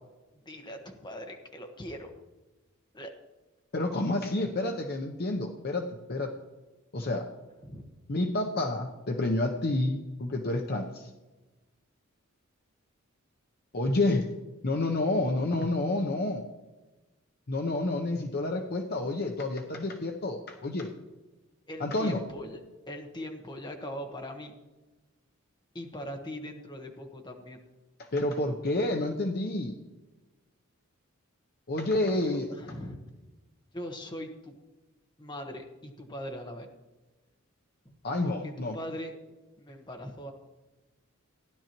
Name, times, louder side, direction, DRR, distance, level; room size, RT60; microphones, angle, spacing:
voice 1, 0.4-2.1 2.9-3.1 7.6-7.8 21.7-24.5 25.7-27.6 32.2-33.0 33.7-34.5 35.2-36.7 37.8-38.0 38.2-39.1 39.6-40.3, equal, 20° left, 3 dB, 1.3 m, -41 dB
voice 2, 3.7-6.3 6.9-7.3 8.1-11.1 13.7-14.3 14.6-16.4 17.5-20.9 21.8-22.2 28.1-29.8 31.7-32.5 38.0-38.8, left 2 dB, 50° left, 3 dB, 0.7 m, -29 dB
16.0 x 11.0 x 3.0 m, 1.1 s
head